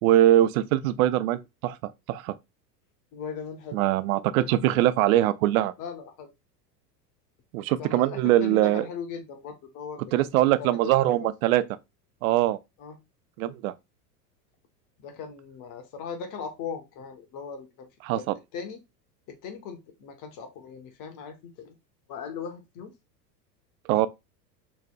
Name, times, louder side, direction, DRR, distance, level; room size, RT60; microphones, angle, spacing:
voice 1, 0.0-2.3 3.7-5.7 7.5-8.8 10.1-11.6 12.2-12.6 13.4-13.7 18.1-18.3 23.9-24.1, right 14 dB, 60° right, 0.5 m, -22 dB
voice 2, 3.1-3.8 4.4-4.5 5.8-6.3 7.8-10.3 10.6-10.8 11.0-11.3 12.8-13.0 15.0-17.9 18.1-18.3 18.5-18.8 19.3-21.8 22.1-22.9, left 6 dB, 40° left, 1.1 m, -38 dB
4.0 x 3.2 x 2.2 m
hypercardioid pair, 90°, 50 cm